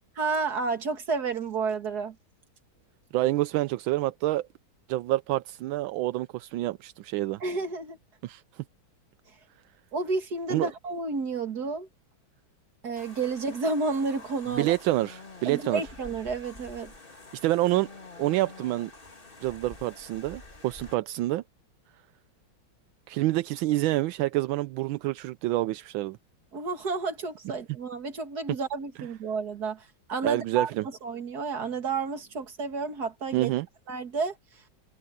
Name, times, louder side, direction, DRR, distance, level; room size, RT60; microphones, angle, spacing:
voice 1, 0.2-2.2 7.4-8.0 9.9-11.9 12.8-14.8 15.5-16.9 26.5-30.7 31.0-33.5 33.9-34.6, right 4 dB, 50° right, 2.6 m, -31 dB
voice 2, 3.1-4.5 4.9-7.4 8.2-8.6 10.5-10.7 14.6-15.8 17.3-17.9 18.2-18.9 19.4-21.4 23.1-26.2 30.2-30.9 33.3-33.7, right 16 dB, 85° right, 1.4 m, -27 dB
sound 1, 13.0-20.9, left 3 dB, 25° left, 2.9 m, -48 dB
omnidirectional pair, 2.1 m